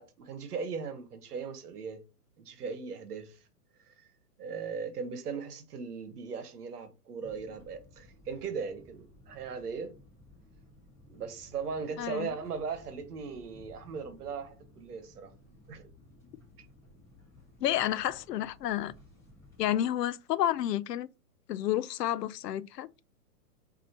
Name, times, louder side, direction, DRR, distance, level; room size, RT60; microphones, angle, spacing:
voice 1, 0.0-2.0 2.4-3.4 3.9-4.1 4.4-9.9 11.1-15.3 15.7-15.9 16.6-16.7, right 5 dB, 70° right, 1.1 m, -38 dB
stop on a german fasttrain, 7.2-19.7, left 1 dB, 5° left, 1.3 m, -57 dB
voice 2, 12.0-12.3 17.6-18.9 19.6-21.1 21.5-22.9, left 12 dB, 85° left, 0.5 m, -30 dB
6.2 x 2.8 x 2.8 m
hypercardioid pair, 160°, 47 cm